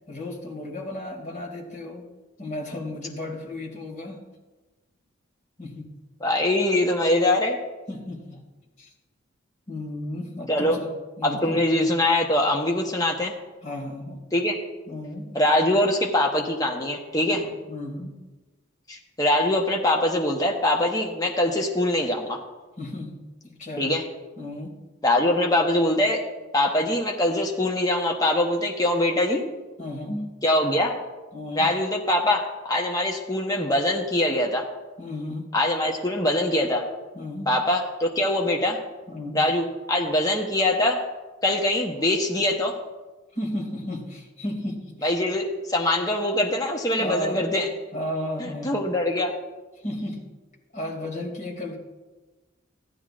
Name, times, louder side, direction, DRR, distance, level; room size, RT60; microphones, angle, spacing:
voice 1, 0.1-2.0 2.4-4.2 5.6-5.9 7.9-8.4 8.8-8.9 9.7-10.9 11.2-11.6 13.6-14.2 14.9-15.3 17.7-18.2 22.8-23.2 23.4-23.9 24.4-24.7 29.8-30.3 31.3-31.7 35.0-35.5 37.1-37.5 39.1-39.5 43.3-45.2 47.0-47.5 47.9-48.8 49.8-50.2 50.7-51.8, left 1 dB, 40° left, -1 dB, 2.4 m, -33 dB
voice 2, 6.2-7.6 10.5-10.8 11.2-13.3 14.3-14.6 15.3-17.4 18.9-22.4 23.8-24.0 25.0-26.2 26.5-29.4 30.4-31.0 31.6-34.7 35.5-36.9 37.5-38.8 39.3-41.0 41.4-42.8 45.0-47.7 48.6-49.3, left 1 dB, 20° left, 1 dB, 0.9 m, -23 dB
14.5 x 11.0 x 2.5 m, 1.2 s
head